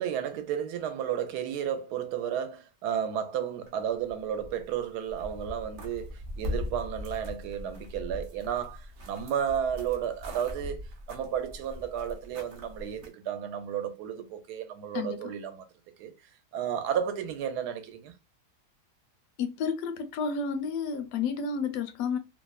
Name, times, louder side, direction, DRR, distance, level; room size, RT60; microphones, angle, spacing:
voice 1, 0.0-15.7 16.0-16.1 16.5-18.1, right 9 dB, 85° right, 1.1 m, -33 dB
sound 1, 3.7-4.8 5.0-13.1, left 1 dB, 65° right, 0.5 m, -40 dB
voice 2, 19.4-22.2, left 5 dB, 70° left, 0.9 m, -31 dB
2.9 x 2.0 x 2.2 m
omnidirectional pair, 1.7 m